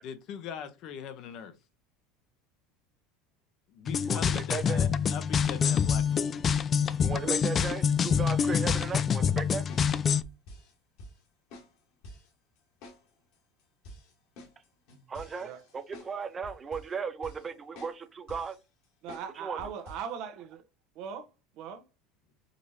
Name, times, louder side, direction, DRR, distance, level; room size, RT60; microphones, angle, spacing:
voice 1, 0.0-1.5 3.7-6.5, left 8 dB, 55° left, 0.8 m, -41 dB
sound 1, 3.9-10.2, left 7 dB, 30° left, 0.3 m, -26 dB
voice 2, 4.1-4.9 7.0-9.6 15.1-18.6 19.4-19.6, right 5 dB, 25° right, 0.6 m, -36 dB
sound 2, 8.1-9.2 9.7-9.9 10.2-10.7 11.0-11.1 11.5-11.7 12.0-12.3 12.8-13.0 13.3-13.4 13.8-16.1 16.4-16.9 17.2-17.5 17.8-18.0 18.3-18.6 19.1-19.3 19.6-20.1, left 1 dB, 70° left, 2.0 m, -48 dB
voice 3, 19.0-20.6 21.0-21.3 21.6-21.8, right 7 dB, 60° right, 0.9 m, -39 dB
5.2 x 3.0 x 2.7 m
supercardioid pair, 120°, 0 cm